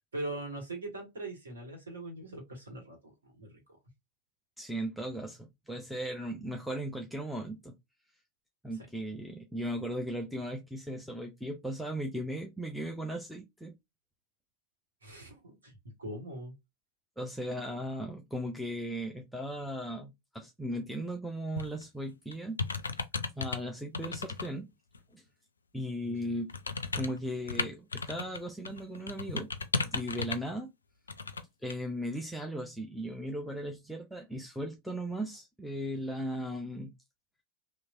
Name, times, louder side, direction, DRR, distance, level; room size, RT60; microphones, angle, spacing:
voice 1, 0.1-3.6 15.0-15.7 16.0-16.5 26.0-26.3, right 2 dB, 70° right, 1.6 m, -41 dB
voice 2, 4.6-7.7 8.6-13.7 17.2-22.6 23.4-24.7 25.1-25.2 25.7-26.6 26.9-29.5 29.9-30.7 31.6-36.9, equal, ahead, 0.6 m, -37 dB
sound 1, 21.6-21.8 22.3-23.6 23.9-24.5 24.9-25.0 26.5-28.4 28.6-30.5 31.1-31.4 31.7-31.8, left 4 dB, 75° left, 0.4 m, -35 dB
3.0 x 2.7 x 2.4 m
figure-of-eight pair, 90°, 0 cm